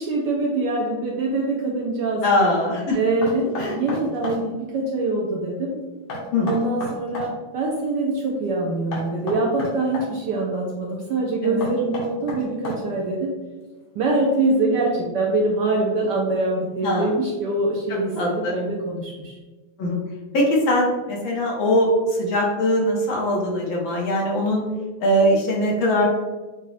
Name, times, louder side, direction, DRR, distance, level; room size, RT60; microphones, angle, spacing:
voice 1, 0.0-2.2 2.9-5.8 6.5-13.3 13.9-19.4, right 2 dB, 70° right, -1 dB, 1.0 m, -24 dB
voice 2, 2.2-3.0 3.6-3.8 6.3-6.5 11.4-11.7 16.8-17.1 17.9-18.6 19.8-20.0 20.3-24.7 25.0-26.0, left 1 dB, 65° left, -2 dB, 1.7 m, -21 dB
Knock, 3.2-4.4 6.1-7.3 8.9-10.1 11.6-13.0, left 1 dB, 85° left, 2.1 m, -32 dB
6.6 x 2.3 x 3.2 m, 1.2 s
omnidirectional pair, 2.4 m